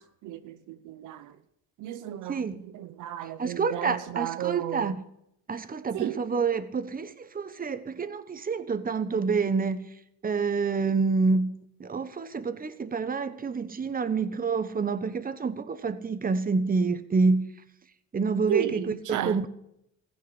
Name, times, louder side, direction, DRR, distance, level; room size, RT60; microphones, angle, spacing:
voice 1, 0.0-1.4 1.8-4.9 5.9-6.3 18.5-19.5, right 12 dB, 85° right, 0.9 m, -33 dB
voice 2, 3.4-4.9 5.5-9.9 10.2-17.5 18.1-19.5, right 4 dB, 30° right, 1.1 m, -28 dB
15.5 x 6.6 x 9.7 m
cardioid pair, 90°, 30 cm